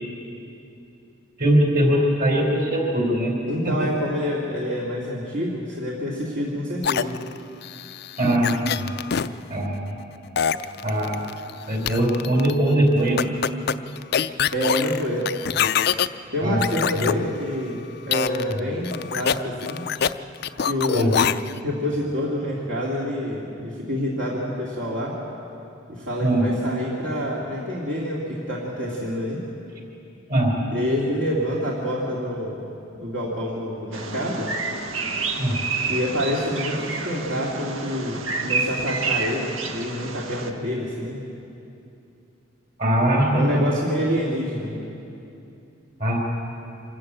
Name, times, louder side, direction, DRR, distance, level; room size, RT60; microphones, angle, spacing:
voice 1, 1.4-3.3 3.6-3.7 8.2-8.9 9.5-9.9 10.8-11.2 11.7-13.2 15.5-15.6 16.4-16.6 17.0-17.2 18.6-18.7 20.9-21.2 26.2-26.5 30.3-30.6 35.4-35.6 42.8-43.6 46.0-46.2, right 1 dB, 45° right, 0 dB, 4.3 m, -21 dB
voice 2, 3.5-7.2 14.5-15.3 16.3-19.9 20.6-21.3 21.6-25.2 25.9-29.4 30.7-32.6 32.9-34.5 35.9-41.2 43.3-44.8, equal, 65° right, -5 dB, 2.5 m, -27 dB
sound 1, 6.8-9.3 10.4-11.5 11.9-12.5 13.2-16.1 16.6-17.1 18.1-18.6 18.8-20.1 20.4-21.6, left 8 dB, 55° left, 0.4 m, -24 dB
Bird vocalization bird call bird song, 33.9-40.5, right 4 dB, 80° right, 1.2 m, -29 dB
25.0 x 14.0 x 8.8 m, 2.7 s
head